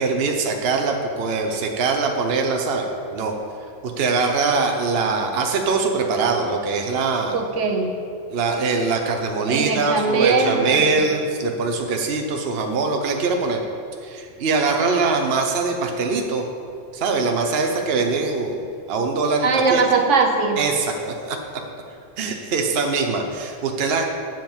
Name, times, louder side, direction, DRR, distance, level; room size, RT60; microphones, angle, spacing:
voice 1, 0.0-3.3 3.8-7.4 8.3-13.6 14.0-16.4 16.9-19.8 20.6-21.4 22.2-24.0, right 4 dB, 55° right, 3 dB, 1.0 m, -22 dB
voice 2, 7.3-7.9 9.5-10.8 19.4-20.6, right 4 dB, 75° right, 4 dB, 1.3 m, -20 dB
7.6 x 7.5 x 7.3 m, 2.4 s
omnidirectional pair, 1.3 m